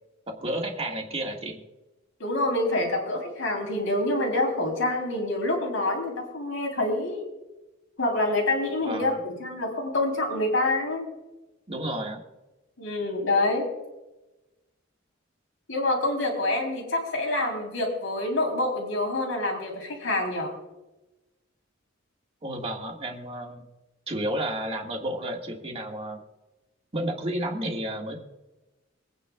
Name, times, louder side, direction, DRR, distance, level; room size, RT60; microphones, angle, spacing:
voice 1, 0.3-1.6 8.8-9.2 11.7-12.2 17.4-17.5 22.4-23.6 24.1-26.2 26.9-28.2, right 1 dB, 30° right, 1 dB, 1.8 m, -31 dB
voice 2, 2.2-7.3 8.0-11.1 12.8-13.7 15.7-20.5, left 2 dB, 80° left, 1 dB, 3.6 m, -26 dB
25.0 x 9.4 x 2.3 m, 1.0 s
head